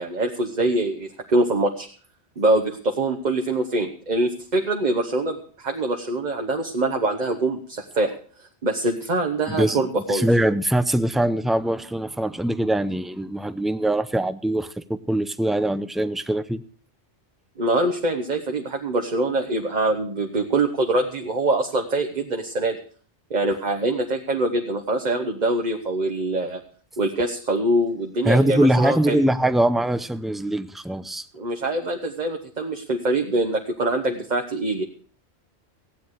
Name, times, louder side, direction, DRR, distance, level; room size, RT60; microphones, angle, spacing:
voice 1, 0.0-1.9 2.4-8.2 8.6-10.2 17.6-22.8 23.3-26.6 27.0-29.2 31.3-34.8, right 2 dB, 40° right, 3 dB, 1.2 m, -24 dB
voice 2, 9.5-9.8 10.1-16.6 28.2-31.3, right 1 dB, ahead, 13 dB, 0.4 m, -22 dB
15.5 x 9.2 x 6.5 m, 0.43 s
omnidirectional pair, 1.1 m